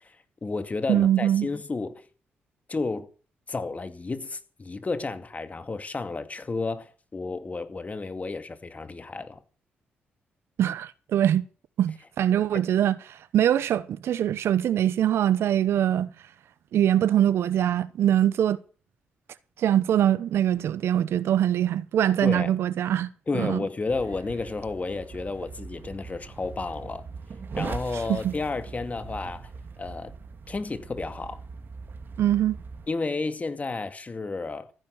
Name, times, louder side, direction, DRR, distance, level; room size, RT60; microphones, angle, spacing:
voice 1, 0.0-2.0 2.7-3.1 3.5-9.4 12.5-12.6 22.2-22.5 23.3-27.0 27.6-29.5 29.8-30.1 30.5-31.4 32.9-34.7, left 3 dB, 35° left, 2.3 m, -32 dB
voice 2, 0.9-1.5 10.6-11.5 11.8-16.1 16.7-18.6 19.6-23.6 28.1-28.3 32.2-32.6, right 11 dB, 75° right, 1.0 m, -23 dB
sound 1, 23.9-32.9, right 5 dB, 55° right, 2.7 m, -40 dB
14.5 x 10.5 x 8.2 m
supercardioid pair, 55°, 4 cm